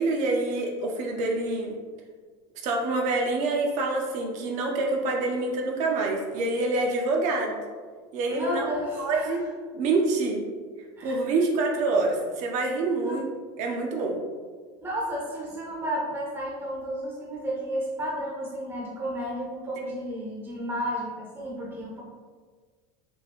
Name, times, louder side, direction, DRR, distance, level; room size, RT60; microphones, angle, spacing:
voice 1, 0.0-1.7 2.6-7.6 8.1-8.7 9.0-9.4 9.7-10.4 11.0-13.3 13.6-14.2, right 3 dB, 55° right, 1 dB, 0.7 m, -26 dB
voice 2, 8.3-9.4 11.0-11.2 13.0-13.3 14.8-22.0, equal, 15° right, -4 dB, 0.7 m, -32 dB
4.3 x 2.3 x 2.9 m, 1.5 s
supercardioid pair, 120°, 15 cm